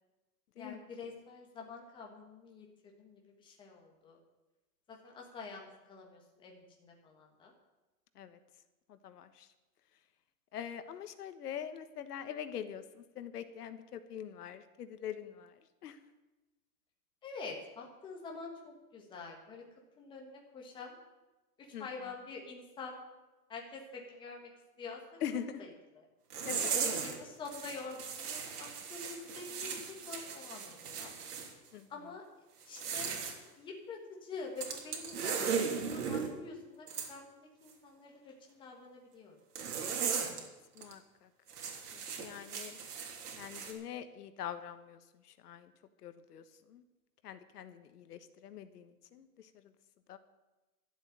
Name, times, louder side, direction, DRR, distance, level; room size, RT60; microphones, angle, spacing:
voice 1, 0.6-4.2 4.9-7.5 17.2-19.6 20.0-20.9 21.6-23.0 23.5-24.5 24.8-25.0 26.0-26.1 26.8-29.8 30.1-31.1 31.9-32.2 32.6-33.1 33.5-39.4, left 4 dB, 10° left, 0 dB, 1.6 m, -47 dB
voice 2, 8.9-9.5 10.5-15.5 15.8-16.0 21.7-21.9 25.2-25.6 26.4-26.7 31.7-31.9 40.2-40.4 40.7-41.3 41.9-42.8 43.3-45.0 45.2-45.7 46.0-46.4 46.7-46.8 47.2-49.5 50.1-50.2, left 9 dB, 80° left, 10 dB, 1.4 m, -43 dB
sound 1, 26.3-27.2 27.4-31.5 32.6-33.4 34.6-36.3 36.9-37.1 39.6-40.4 40.8-40.9 41.5-43.7, right 6 dB, 80° right, 3.3 m, -37 dB
12.5 x 8.1 x 9.5 m, 1.1 s
supercardioid pair, 175°, 45 cm